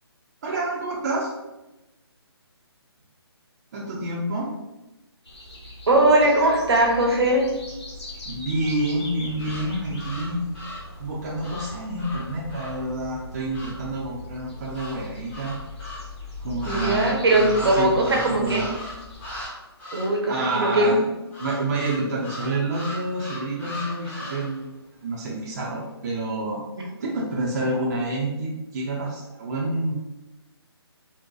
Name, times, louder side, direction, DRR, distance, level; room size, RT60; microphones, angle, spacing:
voice 1, 0.4-1.3 3.7-4.5 8.3-10.4 11.0-15.5 16.4-18.6 20.3-21.0 21.4-24.7 25.0-26.6 27.0-29.9, right 2 dB, 40° right, -4 dB, 0.6 m, -28 dB
sound 1, 5.2-19.5, left 2 dB, 85° left, 1.1 m, -40 dB
voice 2, 5.9-7.5 16.7-18.7 19.9-20.9, right 1 dB, 65° right, -1 dB, 0.8 m, -20 dB
sound 2, 9.3-13.9 14.7-16.1 16.6-19.5 19.8-20.2 21.3-24.6, left 1 dB, 10° left, 0.7 m, -37 dB
4.1 x 2.1 x 2.3 m, 1.0 s
figure-of-eight pair, 145°, 14 cm